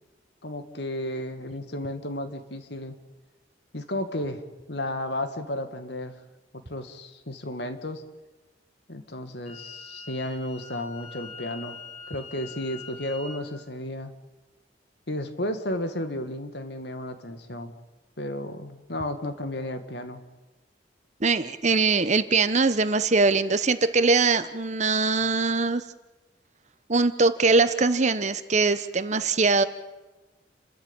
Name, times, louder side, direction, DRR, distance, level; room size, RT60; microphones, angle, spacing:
voice 1, 0.4-3.0 3.7-4.4 4.7-6.1 6.5-8.0 8.9-11.8 12.1-14.1 15.1-17.7 18.2-20.2, left 1 dB, 60° left, 9 dB, 2.0 m, -33 dB
Wind instrument woodwind instrument, 9.4-13.4, left 5 dB, 40° left, 4.6 m, -43 dB
voice 2, 21.2-25.8 26.9-29.6, right 3 dB, 40° right, 12 dB, 1.0 m, -22 dB
30.0 x 13.0 x 9.0 m, 1.1 s
head